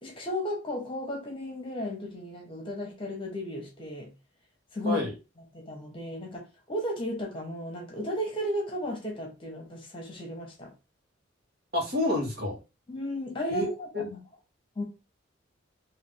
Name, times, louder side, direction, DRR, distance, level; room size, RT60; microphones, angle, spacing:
voice 1, 0.0-4.1 4.7-5.1 5.5-10.7 12.9-14.2 14.7-14.8, equal, 25° left, 1.3 m, -34 dB
voice 2, 11.7-12.6 13.5-14.1, left 2 dB, 55° right, 1.5 m, -29 dB
3.7 x 2.8 x 3.5 m
head